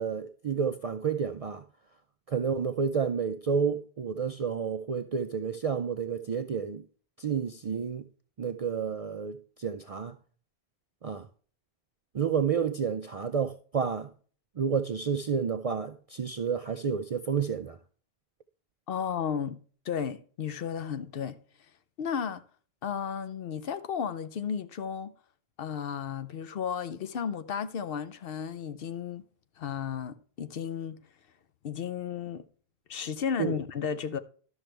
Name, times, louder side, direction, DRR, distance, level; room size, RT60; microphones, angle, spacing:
voice 1, 0.0-1.6 2.3-6.8 7.2-8.0 8.4-10.1 11.0-11.3 12.1-14.1 14.6-17.8 33.4-33.5, right 6 dB, 55° right, 0.4 m, -30 dB
voice 2, 18.9-21.4 22.0-22.4 22.8-25.1 25.6-29.2 29.6-31.0 31.6-32.4 32.9-34.2, left 7 dB, 65° left, 0.8 m, -33 dB
12.0 x 6.4 x 3.2 m
omnidirectional pair, 1.1 m